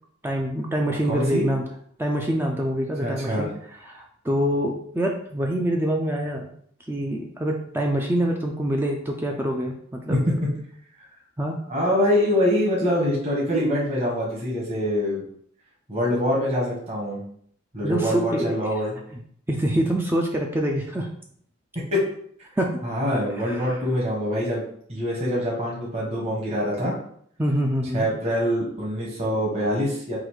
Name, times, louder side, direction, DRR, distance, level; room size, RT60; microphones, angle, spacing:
voice 1, 0.2-1.7 2.0-3.5 3.8-6.5 6.9-10.2 11.4-11.6 17.8-18.6 19.5-21.1 22.6-22.8 23.4-23.8 27.4-28.1, right 1 dB, 10° right, 1 dB, 0.4 m, -25 dB
voice 2, 0.9-1.4 3.0-3.4 10.1-10.5 11.7-15.2 15.9-17.2 17.7-18.9 21.7-22.0 22.8-24.6 24.9-26.9 27.9-30.2, equal, 30° right, -5 dB, 1.2 m, -24 dB
3.8 x 2.6 x 4.6 m, 0.63 s
head